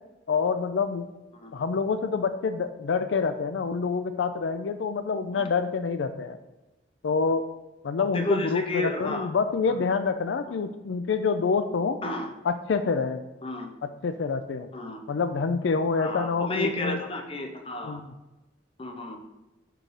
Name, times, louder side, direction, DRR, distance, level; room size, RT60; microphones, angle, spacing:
voice 1, 0.3-1.1 1.5-6.4 7.0-7.5 7.8-12.0 12.4-13.2 13.8-14.7 15.1-17.0 17.8-18.1, left 5 dB, 85° left, 10 dB, 0.4 m, -27 dB
voice 2, 8.0-9.3 12.0-12.3 13.4-13.7 14.7-15.0 16.0-18.0 18.8-19.2, left 2 dB, 30° left, 4 dB, 0.8 m, -31 dB
5.9 x 4.6 x 4.9 m, 1.1 s
head